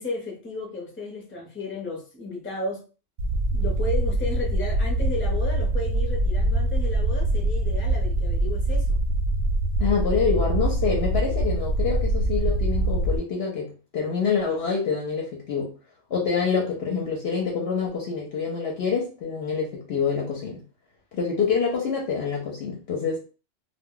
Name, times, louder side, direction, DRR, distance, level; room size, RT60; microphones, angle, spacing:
voice 1, 0.0-2.8 3.5-9.0, left 2 dB, 15° left, -1 dB, 0.5 m, -33 dB
sound 1, 3.2-13.2, right 1 dB, 90° right, 1.0 m, -24 dB
voice 2, 9.8-15.7 16.1-20.6 21.1-23.2, left 5 dB, 60° left, -1 dB, 0.8 m, -26 dB
2.2 x 2.1 x 3.7 m, 0.37 s
omnidirectional pair, 1.3 m